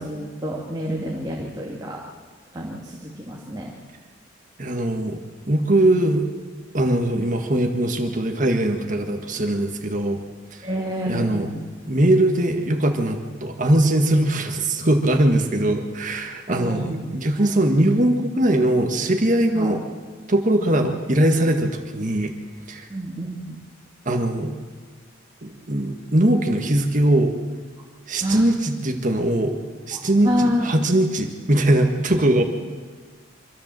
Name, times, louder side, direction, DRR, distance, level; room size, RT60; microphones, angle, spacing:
voice 1, 0.0-2.0 2.5-3.7 10.6-11.6 16.5-17.1 17.4-17.5 19.5-19.7 20.6-20.9 22.9-23.6 28.2-28.5 29.9-30.7, equal, 20° right, -2 dB, 2.3 m, -28 dB
voice 2, 4.6-5.2 5.5-6.3 6.7-10.2 10.5-10.6 11.1-11.5 11.9-19.8 20.3-22.3 22.7-22.9 24.0-24.5 25.4-27.4 28.1-32.4, right 1 dB, 40° right, 4 dB, 1.7 m, -21 dB
25.0 x 14.0 x 7.6 m, 1.5 s
head